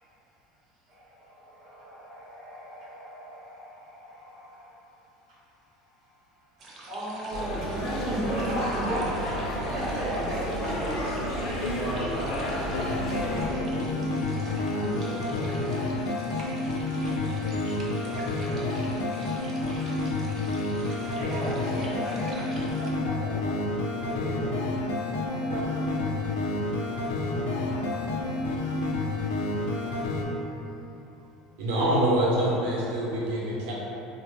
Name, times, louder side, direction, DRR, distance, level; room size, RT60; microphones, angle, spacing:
voice 1, 0.9-4.7 6.9-9.1 9.7-11.0 13.0-15.5 18.8-19.0 20.6-23.4 25.2-26.2, right 1 dB, 45° right, -8 dB, 1.0 m, -36 dB
sound 1, 6.6-22.9, right 2 dB, 25° right, 0.4 m, -47 dB
sound 2, 7.3-13.4, equal, 55° left, 0.6 m, -31 dB
voice 2, 11.6-12.4 16.1-19.9 24.0-24.6 27.1-28.4, right 1 dB, 30° left, -11 dB, 1.0 m, -41 dB
sound 3, 12.7-30.2, left 2 dB, 90° left, 0.4 m, -29 dB
voice 3, 31.6-33.7, right 1 dB, 85° right, -5 dB, 0.7 m, -25 dB
3.4 x 2.1 x 3.0 m, 3.0 s
cardioid pair, 165°, 0 cm